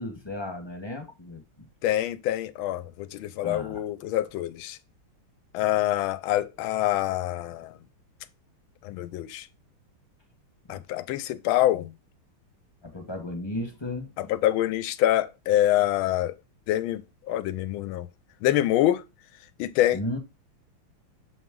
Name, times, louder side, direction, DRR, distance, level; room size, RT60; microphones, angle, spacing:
voice 1, 0.0-1.7 3.4-3.8 10.7-10.8 12.9-14.3 19.9-20.2, left 1 dB, 15° left, 1.0 m, -35 dB
voice 2, 1.8-4.8 5.5-7.7 8.8-9.5 10.7-11.9 14.2-16.3 16.7-17.0 17.3-18.1 18.4-19.0 19.6-20.0, left 13 dB, 75° left, 1.3 m, -25 dB
7.3 x 4.2 x 3.7 m
omnidirectional pair, 2.4 m